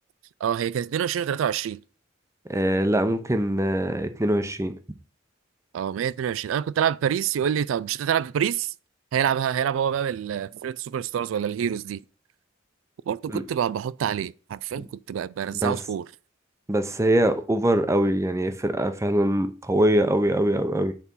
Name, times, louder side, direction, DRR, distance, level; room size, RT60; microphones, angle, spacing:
voice 1, 0.4-1.8 5.7-8.7 9.1-12.0 13.1-16.1, right 8 dB, 85° right, 0.3 m, -26 dB
voice 2, 2.5-4.7 13.3-13.4 15.6-15.8 16.7-20.9, right 1 dB, 15° right, 0.6 m, -23 dB
8.4 x 4.1 x 5.4 m
head